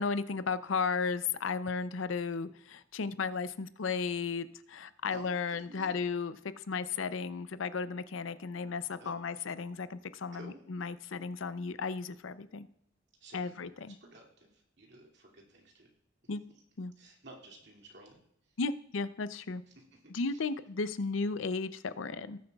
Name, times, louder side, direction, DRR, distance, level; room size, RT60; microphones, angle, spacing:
voice 1, 0.0-6.3 6.7-12.7 13.3-13.9 16.3-16.4 16.8-16.9 18.6-19.6 20.1-22.4, left 4 dB, 80° left, 13 dB, 0.5 m, -34 dB
voice 2, 5.1-6.0 8.9-9.2 10.3-10.6 13.2-15.9 17.0-18.6 19.7-20.4, right 1 dB, 60° right, 0 dB, 2.4 m, -54 dB
19.0 x 7.8 x 2.3 m, 0.77 s
head